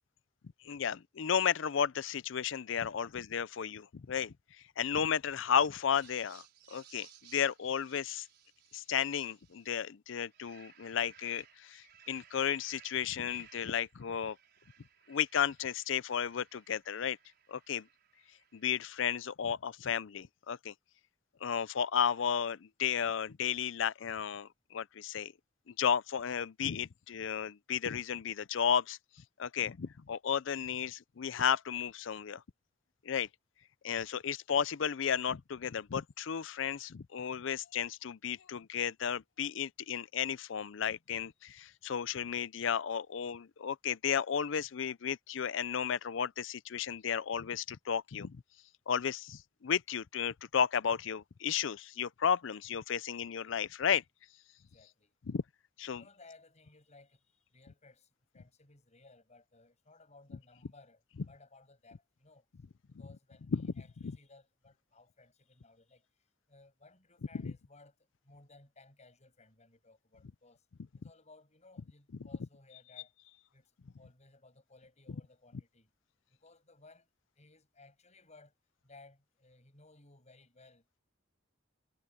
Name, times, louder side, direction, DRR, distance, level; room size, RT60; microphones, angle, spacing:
voice 1, 0.6-4.3 4.8-8.3 8.7-14.4 15.1-17.2 17.5-17.9 18.5-20.7 21.4-25.3 25.7-29.0 29.4-32.4 33.0-33.3 33.8-48.4 48.9-54.0 55.3-55.4 55.8-56.0 63.5-63.7 64.0-64.2 67.4-67.5, left 7 dB, 65° left, 0.5 m, -33 dB
sound 1, 5.9-9.8 10.2-18.9, right 9 dB, 55° right, 5.6 m, -61 dB
voice 2, 54.7-55.1 55.9-58.1 58.3-62.4 62.9-66.1 66.5-68.0 68.2-70.6 70.9-73.1 73.5-73.7 74.0-75.9 76.3-77.1 77.4-78.5 78.8-80.8, left 3 dB, 35° left, 7.9 m, -60 dB
head